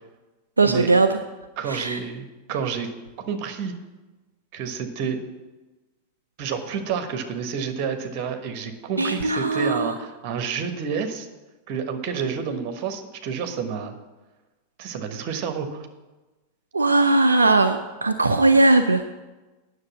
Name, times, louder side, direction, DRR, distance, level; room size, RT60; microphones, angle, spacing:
voice 1, 0.6-1.1 1.7-2.0 9.0-9.9 16.7-19.0, right 2 dB, 80° right, 7 dB, 0.5 m, -19 dB
voice 2, 1.6-2.9 3.2-3.7 4.5-5.2 6.4-11.3 11.7-13.9 14.8-15.9, right 6 dB, 40° right, 7 dB, 1.3 m, -29 dB
9.7 x 6.5 x 7.2 m, 1.1 s
figure-of-eight pair, 90°, 0 cm